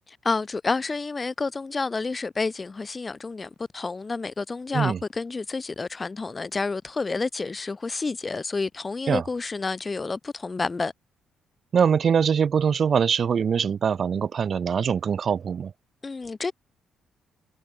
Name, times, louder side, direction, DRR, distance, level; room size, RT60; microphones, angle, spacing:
voice 1, 0.1-10.9 16.0-16.5, left 3 dB, 25° left, 0.4 m, -29 dB
voice 2, 11.7-15.7, right 7 dB, 50° right, 0.3 m, -23 dB
cardioid pair, 90°, 0 cm